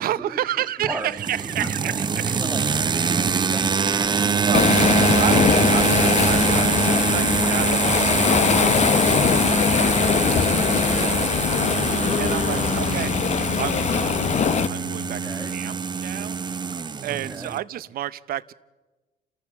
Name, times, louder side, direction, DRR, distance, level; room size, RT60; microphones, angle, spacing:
voice 1, 0.0-2.4 4.2-10.5 11.0-11.3 11.9-13.1 13.6-14.3 14.7-16.7 17.0-18.5, right 12 dB, 60° right, 16 dB, 0.8 m, -31 dB
voice 2, 0.8-1.1 1.6-1.9 2.4-5.0 8.0-8.6 10.6-11.3 12.5-12.7 15.0-15.5 17.1-17.5, right 2 dB, 10° right, -6 dB, 2.6 m, -37 dB
sound 1, 0.8-17.6, right 5 dB, 25° right, 0.7 m, -24 dB
Waves surf, 4.5-14.7, left 8 dB, 40° left, 0.8 m, -22 dB
Bowed string instrument, 12.4-16.6, left 9 dB, 80° left, 1.7 m, -40 dB
30.0 x 14.0 x 7.1 m, 1.2 s
cardioid pair, 110°, 17 cm